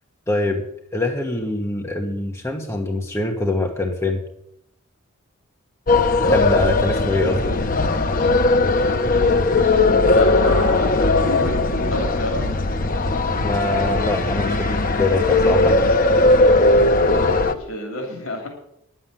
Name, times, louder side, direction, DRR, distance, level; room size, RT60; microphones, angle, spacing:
voice 1, 0.3-0.6 0.9-4.2 6.3-7.5 13.4-15.8, left 2 dB, 15° left, 2 dB, 1.1 m, -24 dB
sound 1, 5.9-17.5, left 2 dB, 40° left, 0.8 m, -18 dB
voice 2, 9.9-12.4 17.5-18.5, left 2 dB, 85° left, 2 dB, 2.9 m, -28 dB
10.5 x 7.6 x 8.4 m, 0.77 s
head